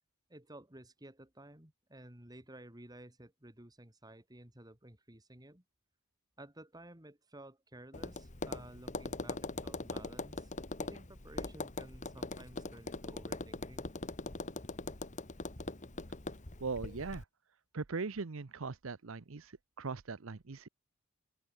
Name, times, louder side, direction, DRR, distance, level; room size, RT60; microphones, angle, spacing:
voice 1, 0.3-5.6 6.4-13.9, right 1 dB, 20° right, 2.9 m, -54 dB
Tap, 7.9-17.2, left 2 dB, 35° left, 1.7 m, -42 dB
voice 2, 16.6-17.2 17.7-20.7, right 4 dB, 65° right, 0.8 m, -40 dB
open air
head